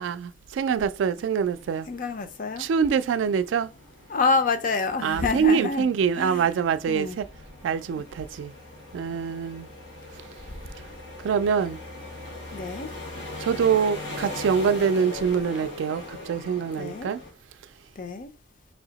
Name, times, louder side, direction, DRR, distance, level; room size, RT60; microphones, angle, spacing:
voice 1, 0.0-1.9 2.6-3.7 5.0-7.3 7.6-8.5 8.9-9.7 11.2-11.8 13.4-17.2, right 6 dB, 90° right, 0.3 m, -25 dB
sound 1, 1.5-17.3, left 2 dB, 70° left, 1.7 m, -41 dB
voice 2, 1.9-2.7 4.1-5.9 6.1-6.5 6.9-7.2 8.0-8.1 12.5-12.9 16.8-17.1 18.0-18.3, left 4 dB, 45° left, 0.5 m, -27 dB
3.4 x 2.8 x 3.9 m
head